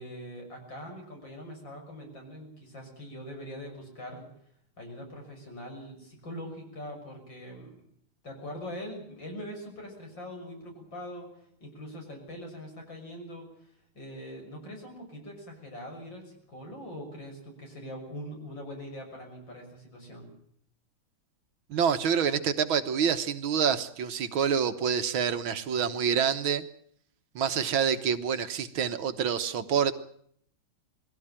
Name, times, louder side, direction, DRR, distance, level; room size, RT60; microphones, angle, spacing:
voice 1, 0.0-4.3 4.8-7.8 8.2-11.3 11.6-13.5 14.0-20.3, equal, 60° left, 2 dB, 7.2 m, -42 dB
voice 2, 21.7-26.6 27.4-29.9, right 7 dB, 75° right, 10 dB, 1.9 m, -27 dB
22.0 x 16.5 x 8.9 m, 0.66 s
omnidirectional pair, 2.3 m